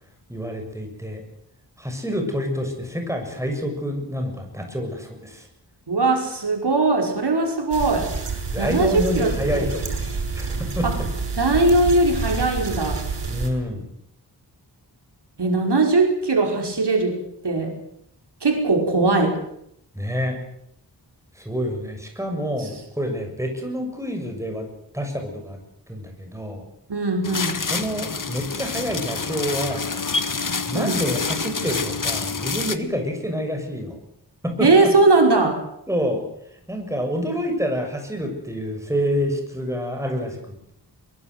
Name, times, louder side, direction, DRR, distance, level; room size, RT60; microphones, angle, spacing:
voice 1, 0.3-1.2 1.8-5.5 8.5-10.9 13.3-13.9 19.9-20.4 21.3-24.7 24.9-25.6 25.9-26.7 27.7-29.9 30.7-34.0 34.4-34.7 35.9-36.2 36.7-40.4, equal, 5° right, 3 dB, 7.0 m, -27 dB
voice 2, 5.9-8.1 8.6-9.7 10.8-10.9 11.4-13.0 15.4-17.2 17.4-17.7 18.4-19.3 22.6-22.7 26.9-27.6 30.7-31.0 34.6-35.6, right 3 dB, 70° right, 2 dB, 5.3 m, -20 dB
sound 1, 7.7-13.5, right 4 dB, 85° right, 7.0 m, -28 dB
sound 2, 27.2-32.8, left 4 dB, 50° left, 1.7 m, -27 dB
23.0 x 22.5 x 8.1 m, 0.75 s
wide cardioid pair, 95°, 42 cm